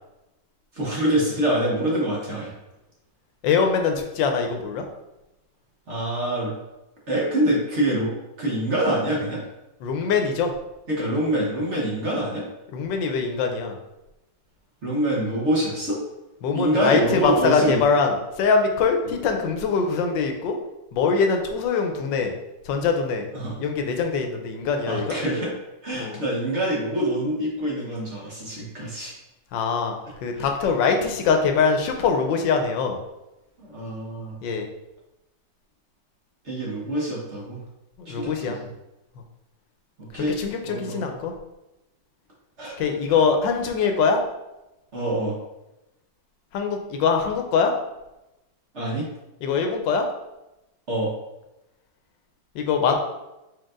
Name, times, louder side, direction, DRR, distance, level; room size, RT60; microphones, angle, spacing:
voice 1, 0.7-2.5 5.9-6.5 7.1-8.1 8.4-9.4 10.9-12.4 14.8-16.0 16.5-17.8 23.3-23.6 24.9-25.5 25.8-29.1 30.3-30.5 33.6-34.3 36.4-37.6 38.0-38.7 40.0-40.4 40.6-41.1 42.6-42.7 44.9-45.3 48.7-49.1 50.9-51.1, right 1 dB, 45° right, -4 dB, 1.1 m, -25 dB
voice 2, 3.4-4.8 9.8-10.5 12.7-13.8 16.4-20.6 20.9-22.3 22.6-23.3 23.6-25.2 26.0-26.2 29.5-33.0 34.4-34.7 38.0-38.6 40.1-41.3 42.8-44.2 46.5-47.7 49.4-50.0 52.5-53.0, left 5 dB, 80° left, 4 dB, 1.3 m, -23 dB
4.6 x 4.5 x 2.5 m, 0.96 s
omnidirectional pair, 2.0 m